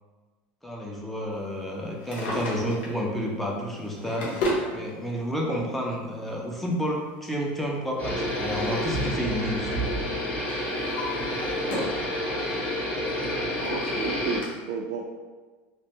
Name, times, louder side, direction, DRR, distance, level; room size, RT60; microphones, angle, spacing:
voice 1, 0.6-4.3 4.7-9.8, equal, 5° left, -2 dB, 0.5 m, -30 dB
Drawer open or close, 1.9-3.0 3.7-4.7 5.8-5.9 7.6-9.2 9.5-9.9 10.4-12.0 12.5-12.6 13.3-13.4 13.6-13.7 14.4-14.5, left 1 dB, 80° left, 0.9 m, -33 dB
sound 1, 8.0-14.4, left 1 dB, 30° left, 0.9 m, -29 dB
voice 2, 13.6-15.0, right 5 dB, 70° right, 0 dB, 0.3 m, -32 dB
3.2 x 2.5 x 2.7 m, 1.3 s
supercardioid pair, 140°, 6 cm